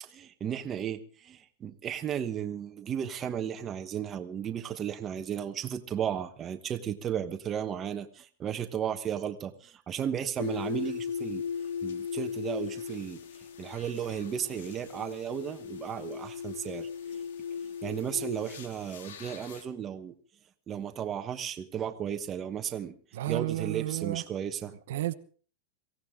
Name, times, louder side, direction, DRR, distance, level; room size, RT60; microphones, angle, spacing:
voice 1, 0.0-11.4 11.8-13.2 13.6-16.9 17.8-20.1 20.7-22.9 23.3-24.7, right 9 dB, 20° right, 1.2 m, -34 dB
sound 1, 10.4-19.6, left 7 dB, 85° left, 2.1 m, -38 dB
voice 2, 23.1-24.2 24.9-25.1, right 15 dB, 70° right, 1.0 m, -31 dB
23.0 x 16.5 x 3.7 m
supercardioid pair, 160°, 0 cm